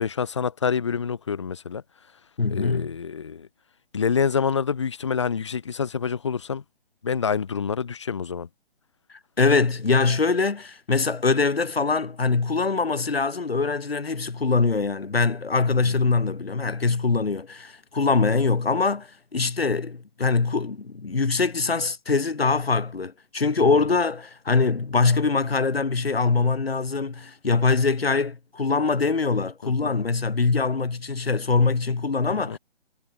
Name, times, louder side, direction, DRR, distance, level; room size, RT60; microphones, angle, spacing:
voice 1, 0.0-1.8 2.5-3.5 3.9-6.6 7.0-8.5 29.6-29.9 32.3-32.6, left 6 dB, 30° left, 0.4 m, -27 dB
voice 2, 2.4-2.9 9.4-32.6, left 4 dB, 70° left, 2.6 m, -23 dB
figure-of-eight pair, 140°, 31 cm